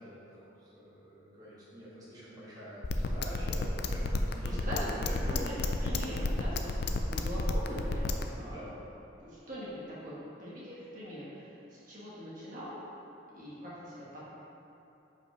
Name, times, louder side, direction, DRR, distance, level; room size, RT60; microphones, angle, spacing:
voice 1, 0.0-4.6 4.8-5.5 8.4-8.7, equal, 20° right, -10 dB, 1.5 m, -46 dB
sound 1, 2.8-8.2, left 3 dB, 60° left, 0.4 m, -31 dB
voice 2, 4.4-4.9 5.3-8.1 8.4-8.8 9.2-12.7 13.3-13.9, equal, 45° right, -8 dB, 1.4 m, -42 dB
5.4 x 4.8 x 5.1 m, 2.9 s
head